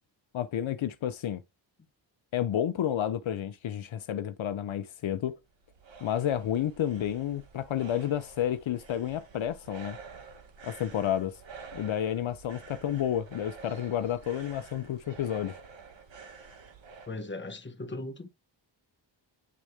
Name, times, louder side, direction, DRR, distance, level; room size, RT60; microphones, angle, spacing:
voice 1, 0.3-1.4 2.3-5.3 6.0-10.0 10.6-11.3 11.7-15.6, left 10 dB, 80° left, 0.8 m, -30 dB
sound 1, 5.3-17.1, right 5 dB, 70° right, 1.8 m, -49 dB
voice 2, 17.1-18.3, left 2 dB, 25° left, 1.2 m, -38 dB
9.6 x 3.6 x 3.3 m
wide cardioid pair, 105°, 46 cm